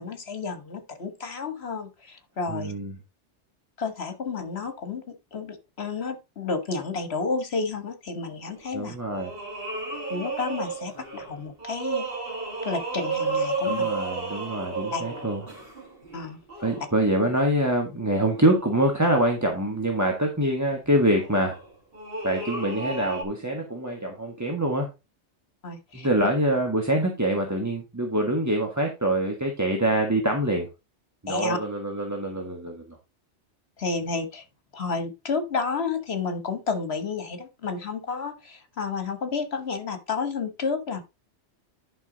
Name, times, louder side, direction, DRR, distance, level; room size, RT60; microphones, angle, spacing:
voice 1, 0.0-2.7 3.8-8.9 10.1-12.1 12.6-13.9 14.9-15.0 16.1-16.4 25.6-26.1 31.3-31.6 33.8-34.4 34.7-41.0, left 4 dB, 60° left, 8 dB, 1.7 m, -31 dB
voice 2, 2.5-2.9 8.7-9.4 13.6-15.4 16.6-21.6 22.2-24.9 25.9-30.7 31.2-33.0, right 1 dB, 15° right, 1 dB, 1.5 m, -25 dB
sound 1, 8.6-8.7 9.1-17.0 18.2-18.9 19.6-19.7 21.1-23.2, right 3 dB, 50° right, 3.1 m, -32 dB
11.0 x 5.6 x 3.9 m, 0.26 s
omnidirectional pair, 1.2 m